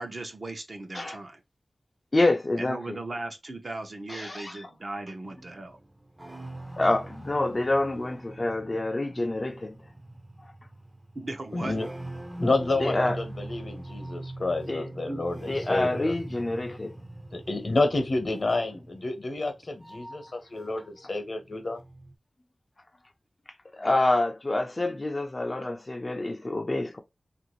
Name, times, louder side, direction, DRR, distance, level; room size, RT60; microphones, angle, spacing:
voice 1, 0.0-1.4 2.6-5.8 11.1-11.8 15.1-15.2, right 2 dB, 55° right, 0.8 m, -37 dB
voice 2, 2.1-3.0 4.1-4.5 6.8-9.8 12.8-13.2 14.7-14.9 15.5-17.0 23.7-27.0, left 2 dB, 40° left, 0.5 m, -27 dB
sound 1, 5.3-21.0 21.3-22.2, right 2 dB, 15° right, 0.6 m, -42 dB
voice 3, 11.5-11.9 12.4-16.2 17.3-21.8, left 2 dB, 60° left, 0.9 m, -29 dB
2.9 x 2.6 x 2.9 m
wide cardioid pair, 65°, 0 cm